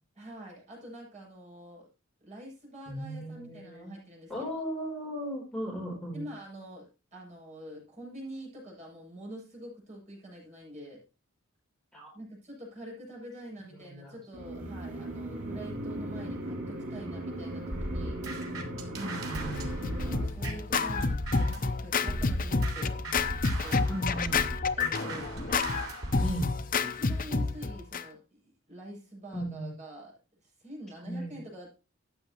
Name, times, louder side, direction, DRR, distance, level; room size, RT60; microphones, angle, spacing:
voice 1, 0.1-1.9 2.2-4.5 6.1-11.0 12.1-18.2 20.0-23.0 23.4-23.9 24.2-24.4 24.8-25.4 26.8-31.7, right 1 dB, 35° right, -4 dB, 7.4 m, -46 dB
voice 2, 2.9-3.9 4.3-6.2 11.9-12.1 13.8-14.1 19.0-19.7 23.9-24.5 26.2-26.5 29.3-29.7 31.0-31.4, equal, ahead, -3 dB, 3.8 m, -36 dB
sound 1, 14.3-20.3, right 1 dB, 70° right, 3.2 m, -38 dB
sound 2, 17.7-21.7 22.1-26.4, right 1 dB, 90° right, 3.3 m, -37 dB
Scratching (performance technique), 19.6-28.0, left 4 dB, 45° left, 0.7 m, -29 dB
14.5 x 8.9 x 3.0 m, 0.32 s
head